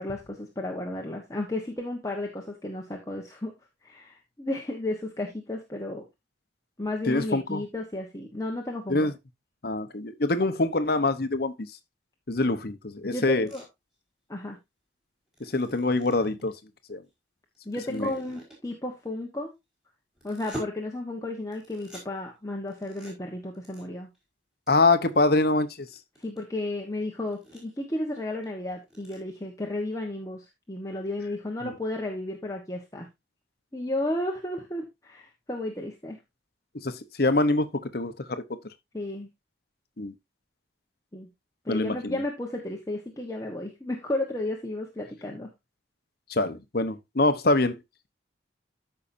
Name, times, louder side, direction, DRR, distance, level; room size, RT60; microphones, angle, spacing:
voice 1, 0.0-3.5 3.8-6.0 6.8-9.1 13.1-13.6 14.3-14.6 17.6-19.5 20.2-24.1 26.2-33.1 33.7-36.2 38.9-39.3 41.1-41.3 41.6-45.5, left 1 dB, 15° left, 1.2 m, -33 dB
voice 2, 7.1-7.6 8.9-9.1 9.6-11.5 12.3-13.5 15.4-16.5 16.9-17.0 17.9-18.2 24.7-25.9 31.6-31.7 36.8-37.7 37.9-38.4 40.0-40.1 41.7-42.2 46.3-47.8, left 2 dB, 50° left, 1.0 m, -24 dB
sound 1, 13.5-13.6 15.3-16.5 17.5-18.7 20.1-20.6 21.5-22.0 22.7-23.1 23.5-23.8 24.1-24.2 24.7-24.8 25.1-25.2 25.8-26.4 26.9-27.0 27.3-27.7 28.1-28.2 28.4-28.5 28.8-29.2, right 1 dB, ahead, 4.7 m, -42 dB
13.5 x 5.8 x 2.7 m
head